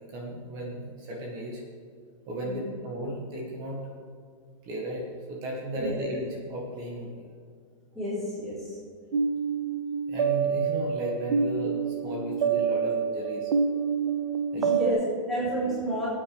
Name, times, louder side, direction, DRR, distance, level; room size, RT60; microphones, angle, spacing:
voice 1, 0.1-1.6 2.3-3.8 4.6-7.2 10.1-13.5 14.5-14.7, equal, 20° right, -2 dB, 1.6 m, -35 dB
voice 2, 2.4-2.7 5.7-6.0 7.9-8.8 14.5-16.1, right 1 dB, ahead, -12 dB, 3.6 m, -30 dB
sound 1, 9.1-14.9, right 6 dB, 85° right, 0.9 m, -27 dB
18.0 x 8.9 x 3.5 m, 2.1 s
hypercardioid pair, 175°, 17 cm